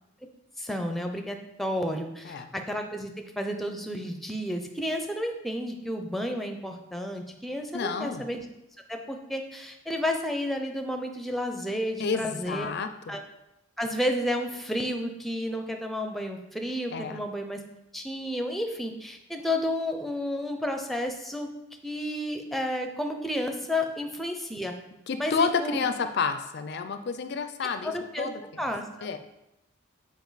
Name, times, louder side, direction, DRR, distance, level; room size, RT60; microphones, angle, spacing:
voice 1, 0.6-8.5 8.9-12.7 13.1-13.2 13.8-17.6 17.9-21.5 21.8-24.7 25.2-25.8 27.8-28.3 28.6-29.1, left 1 dB, ahead, 4 dB, 0.5 m, -31 dB
voice 2, 7.7-8.2 12.0-13.1 16.9-17.2 25.1-28.4 29.0-29.2, left 5 dB, 50° left, 9 dB, 0.4 m, -30 dB
7.1 x 4.7 x 4.0 m, 0.87 s
head